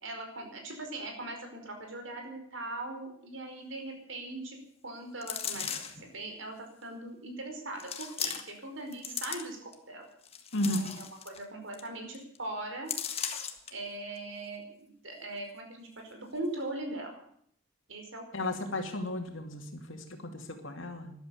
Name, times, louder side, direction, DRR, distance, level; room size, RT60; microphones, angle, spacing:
voice 1, 0.0-4.6 4.8-5.7 6.0-10.1 10.5-12.9 13.7-17.1 17.9-18.5, right 2 dB, 70° right, 3 dB, 4.9 m, -40 dB
sound 1, 5.2-6.1 6.8-6.9 7.8-8.6 8.9-9.7 10.2-11.4 11.7-11.9 12.1-12.4 12.9-13.7 14.2-14.3, left 8 dB, 30° left, 1.6 m, -37 dB
voice 2, 18.3-21.1, left 1 dB, 75° left, 4 dB, 2.4 m, -34 dB
13.5 x 11.5 x 8.5 m, 0.66 s
head